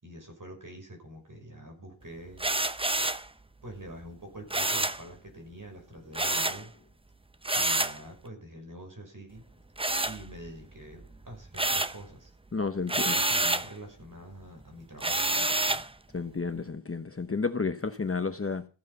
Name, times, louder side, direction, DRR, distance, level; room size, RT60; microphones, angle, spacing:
voice 1, 0.0-2.5 3.6-6.7 7.5-9.4 10.0-12.4 12.9-15.8, right 1 dB, 40° right, 5.7 m, -46 dB
sound 1, 2.4-3.3 4.5-5.0 6.1-6.6 7.4-8.0 9.8-10.6 11.0-12.0 12.9-13.7 15.0-15.9, right 2 dB, 10° right, 0.7 m, -28 dB
voice 2, 12.5-13.2 16.1-18.7, left 4 dB, 30° left, 0.9 m, -31 dB
14.5 x 9.2 x 5.5 m
wide cardioid pair, 90°, 47 cm